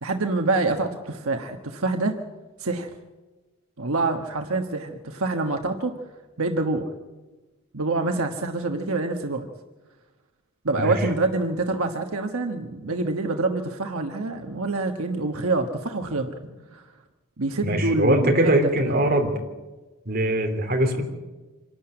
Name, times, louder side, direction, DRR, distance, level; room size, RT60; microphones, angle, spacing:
voice 1, 0.0-2.2 2.6-2.9 3.8-5.9 6.4-6.9 7.7-9.5 10.6-16.3 16.7-16.8 17.4-19.1, right 3 dB, 80° right, 4 dB, 1.3 m, -26 dB
voice 2, 17.6-19.3 20.0-21.0, right 1 dB, 45° right, 2 dB, 3.2 m, -22 dB
26.0 x 12.0 x 8.8 m, 1.2 s
head